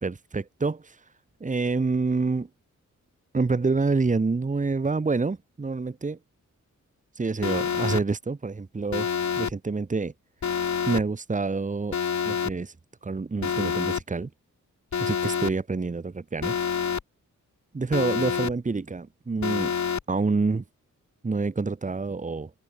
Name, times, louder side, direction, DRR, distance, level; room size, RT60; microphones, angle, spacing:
voice 1, 0.0-1.0 1.4-2.5 3.3-6.2 7.2-10.1 10.9-12.0 12.3-12.7 13.0-14.3 15.0-16.5 17.7-19.7 20.1-20.6 21.2-22.5, right 4 dB, 25° right, 2.1 m, -27 dB
Alarm, 7.4-8.0 8.9-9.5 10.4-11.0 11.9-12.5 13.4-14.0 14.9-15.5 16.4-17.0 17.9-18.5 19.4-20.0, left 7 dB, 65° left, 4.6 m, -27 dB
open air
wide cardioid pair, 180°, 31 cm